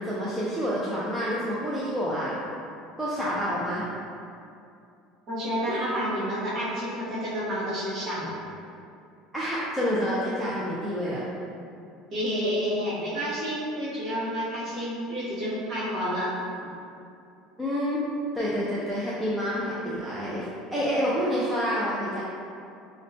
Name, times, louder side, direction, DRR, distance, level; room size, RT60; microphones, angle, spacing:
voice 1, 0.0-2.4 3.0-3.8 5.7-5.9 9.3-11.2 17.6-18.0 18.3-22.2, equal, ahead, -9 dB, 0.3 m, -28 dB
voice 2, 5.3-8.4 12.1-16.3, equal, 25° right, -8 dB, 0.9 m, -29 dB
5.3 x 2.1 x 2.6 m, 2.6 s
cardioid pair, 180°, 0 cm